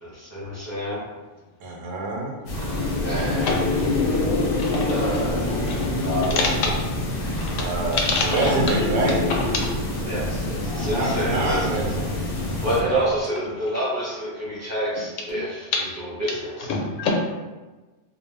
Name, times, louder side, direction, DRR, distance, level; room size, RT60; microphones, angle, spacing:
voice 1, 0.0-1.0 3.0-3.6 4.9-5.4 6.0-6.7 10.0-11.9 12.6-16.7, right 1 dB, 15° right, -8 dB, 0.6 m, -28 dB
voice 2, 1.6-2.4 7.6-9.2 10.9-12.1 12.5-12.8, right 3 dB, 85° right, -1 dB, 1.0 m, -26 dB
sound 1, 2.5-12.8, left 2 dB, 60° left, 0.6 m, -26 dB
sound 2, 2.5-13.2, right 2 dB, 60° right, 0.7 m, -37 dB
voice 3, 3.1-3.6 4.6-5.0 5.7-5.9 7.9-8.6 16.7-17.1, left 4 dB, 80° left, 0 dB, 0.9 m, -26 dB
2.4 x 2.2 x 3.2 m, 1.2 s
omnidirectional pair, 1.3 m